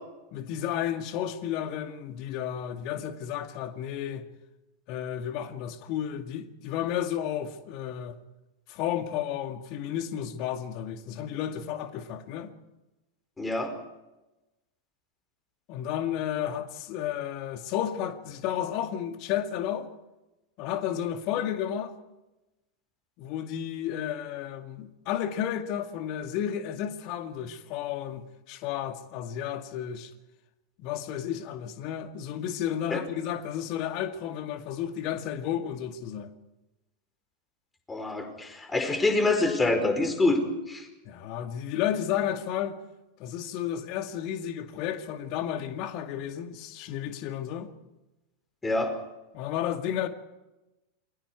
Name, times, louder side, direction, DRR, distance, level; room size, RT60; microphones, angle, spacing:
voice 1, 0.3-4.3 4.9-8.2 8.7-12.5 15.7-19.9 20.6-21.9 23.2-30.1 30.8-36.3 41.1-42.8 43.2-47.7 49.3-50.1, left 10 dB, 40° left, 2.1 m, -32 dB
voice 2, 13.4-13.7 32.9-33.0 37.9-40.9 48.6-49.0, left 2 dB, 10° left, 4.7 m, -26 dB
28.5 x 23.0 x 4.8 m
figure-of-eight pair, 90°, 0 cm